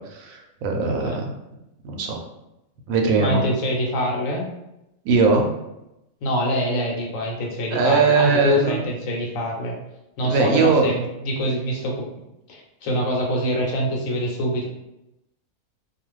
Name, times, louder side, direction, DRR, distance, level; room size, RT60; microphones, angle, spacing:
voice 1, 0.1-1.2 1.8-2.2 2.9-3.4 5.0-5.5 7.7-8.8 10.2-10.9, right 4 dB, 80° right, 2 dB, 1.0 m, -20 dB
voice 2, 0.8-1.1 3.2-4.4 6.2-9.7 10.2-12.1 12.5-14.7, equal, 75° left, -1 dB, 1.1 m, -24 dB
2.5 x 2.4 x 3.1 m, 0.89 s
omnidirectional pair, 1.4 m